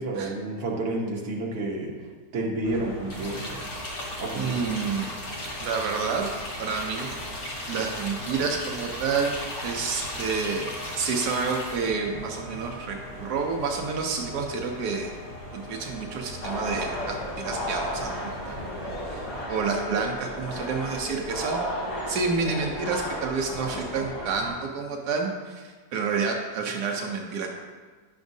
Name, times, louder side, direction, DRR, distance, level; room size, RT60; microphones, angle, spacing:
voice 1, 0.0-1.9 2.3-3.6 4.2-4.6, right 2 dB, 55° right, -2 dB, 1.4 m, -30 dB
sound 1, 2.6-19.5, equal, 20° left, 1.1 m, -41 dB
sound 2, 3.1-11.9, left 1 dB, 50° left, 1.4 m, -36 dB
voice 2, 4.3-5.1 5.6-6.3 6.6-7.2 7.7-15.1 15.5-18.7 19.1-21.6 22.1-27.6, right 5 dB, 80° right, 1 dB, 1.2 m, -29 dB
sound 3, 16.4-24.5, equal, 80° left, 2.0 m, -33 dB
10.0 x 5.9 x 2.7 m, 1.4 s
omnidirectional pair, 1.7 m